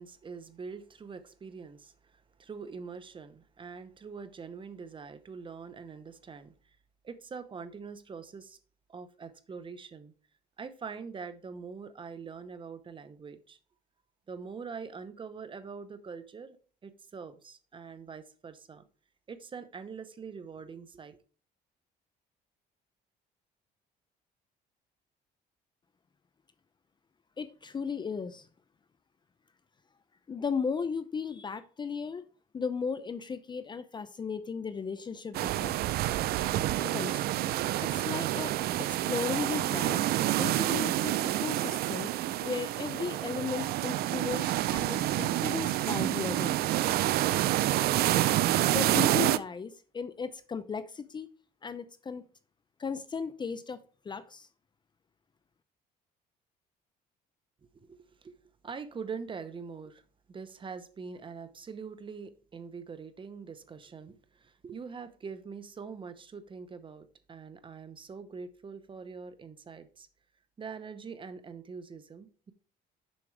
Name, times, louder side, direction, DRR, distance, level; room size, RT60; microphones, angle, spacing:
voice 1, 0.0-6.8 7.0-8.6 8.9-10.1 10.6-13.6 14.3-16.6 16.8-18.8 19.3-21.2 57.7-58.3 58.6-60.0 60.3-70.1 70.6-72.5, right 5 dB, 30° right, 11 dB, 0.8 m, -44 dB
voice 2, 27.4-28.5 30.3-32.3 32.5-35.8 36.8-37.2 37.8-38.6 38.9-42.1 42.4-46.7 48.6-51.3 51.6-52.2 52.8-53.8 54.0-54.5, left 5 dB, 25° left, 13 dB, 0.5 m, -36 dB
sound 1, 35.3-49.4, right 14 dB, 65° right, 0.4 m, -28 dB
7.2 x 6.0 x 3.3 m, 0.39 s
cardioid pair, 110°, 17 cm